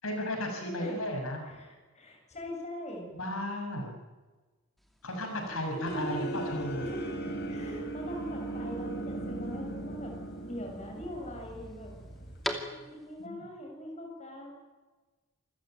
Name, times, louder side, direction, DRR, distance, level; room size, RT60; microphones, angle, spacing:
voice 1, 0.0-1.4 3.2-3.9 5.0-6.8 12.4-12.5 13.2-13.4, left 1 dB, 85° left, 2 dB, 6.9 m, -34 dB
voice 2, 0.6-1.1 1.5-3.1 5.5-6.4 6.8-10.1 10.4-12.0 12.7-14.5, left 1 dB, 35° left, 1 dB, 7.3 m, -42 dB
sound 1, 4.8-13.3, equal, ahead, 2.6 m, -46 dB
sound 2, 5.9-12.5, right 2 dB, 50° left, 3.9 m, -38 dB
27.5 x 16.0 x 9.1 m, 1.3 s
head